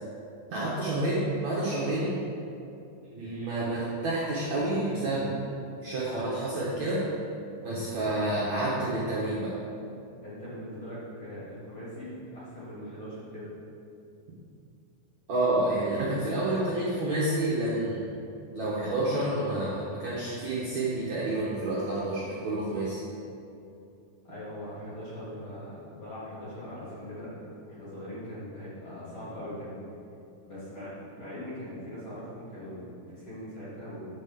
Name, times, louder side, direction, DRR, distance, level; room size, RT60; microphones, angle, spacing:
voice 1, 0.5-2.1 3.1-5.3 5.8-7.0 7.6-9.5 15.3-18.0 18.5-23.0, right 1 dB, 60° right, -8 dB, 2.0 m, -29 dB
voice 2, 10.2-13.5 24.2-27.3 27.6-29.8 30.4-34.1, equal, 40° left, -10 dB, 3.3 m, -41 dB
8.8 x 5.3 x 6.9 m, 2.7 s
omnidirectional pair, 4.8 m